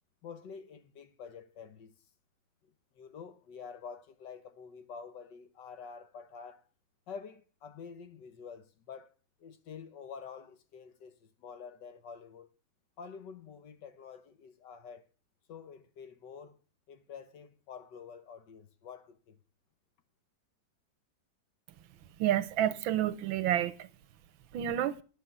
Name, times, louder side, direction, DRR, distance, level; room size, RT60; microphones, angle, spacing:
voice 1, 0.2-1.9 2.6-6.6 7.1-9.1 9.4-12.5 13.0-15.0 15.5-16.6 16.9-19.4, left 6 dB, 70° left, 1.6 m, -48 dB
voice 2, 22.2-23.9 24.5-25.0, right 11 dB, 85° right, 1.6 m, -29 dB
10.0 x 6.9 x 8.2 m
omnidirectional pair, 2.1 m